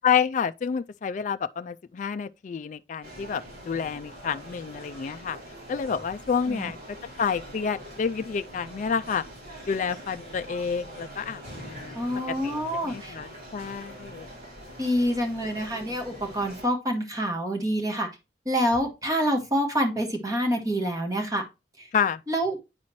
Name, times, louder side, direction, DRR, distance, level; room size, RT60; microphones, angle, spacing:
voice 1, 0.0-5.4 5.7-6.8 7.2-9.2 9.7-12.1 12.4-14.3 21.9-22.2, left 6 dB, 45° left, 0.3 m, -29 dB
sound 1, 3.0-16.7, equal, 60° right, 3.6 m, -44 dB
voice 2, 12.0-13.2 14.8-18.1 18.5-21.4 21.8-21.9 22.3-22.6, equal, 20° right, 1.8 m, -27 dB
9.5 x 4.2 x 3.0 m
head